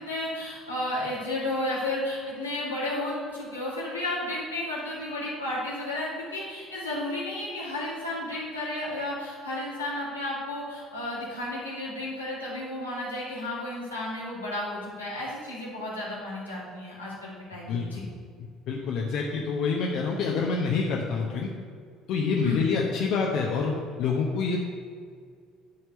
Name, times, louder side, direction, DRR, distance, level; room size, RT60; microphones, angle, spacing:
voice 1, 0.0-18.0 22.4-22.6, left 1 dB, 90° left, -8 dB, 2.5 m, -33 dB
voice 2, 17.7-18.1 18.7-21.5 22.1-23.7 24.0-24.6, left 5 dB, 55° left, -1 dB, 0.9 m, -27 dB
9.7 x 4.6 x 6.9 m, 2.1 s
figure-of-eight pair, 55°, 0 cm